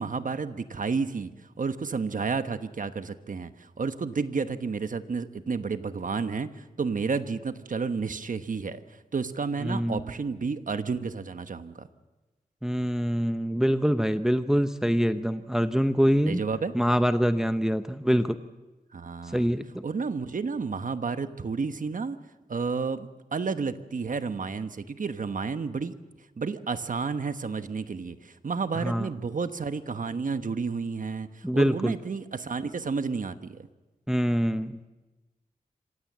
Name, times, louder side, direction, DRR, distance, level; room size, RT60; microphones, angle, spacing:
voice 1, 0.0-1.3 1.6-11.9 16.3-16.7 18.9-19.5 19.8-22.2 22.5-25.9 26.4-33.7, right 5 dB, 60° right, 10 dB, 1.2 m, -31 dB
voice 2, 9.6-10.0 12.6-16.4 16.7-18.4 19.2-19.7 28.7-29.1 31.4-31.9 34.1-34.8, equal, 5° right, 9 dB, 0.7 m, -25 dB
26.5 x 16.5 x 7.5 m, 1.1 s
wide cardioid pair, 85°, 15 cm